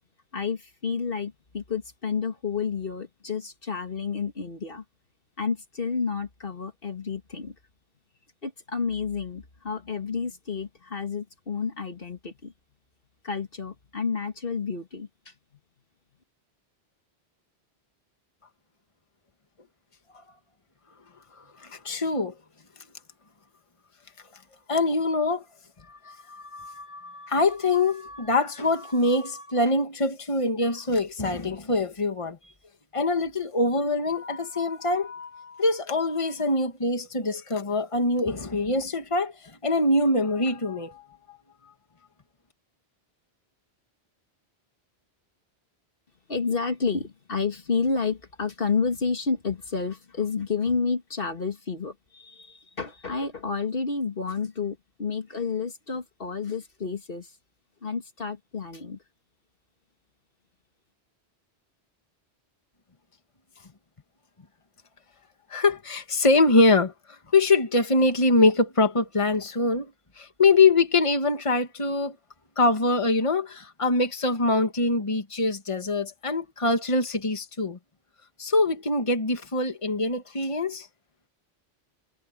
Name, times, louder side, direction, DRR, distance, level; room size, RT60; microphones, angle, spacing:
voice 1, 0.3-4.8 5.4-7.6 8.4-12.5 13.2-15.3 46.3-57.3 57.8-59.0, left 5 dB, 55° left, 2.0 m, -30 dB
voice 2, 21.6-22.3 24.7-25.4 25.9-32.4 32.9-39.3 39.6-41.4 65.5-69.9 70.2-72.2 72.6-77.8 78.4-80.9, left 2 dB, 30° left, 1.7 m, -24 dB
omnidirectional pair, 1.1 m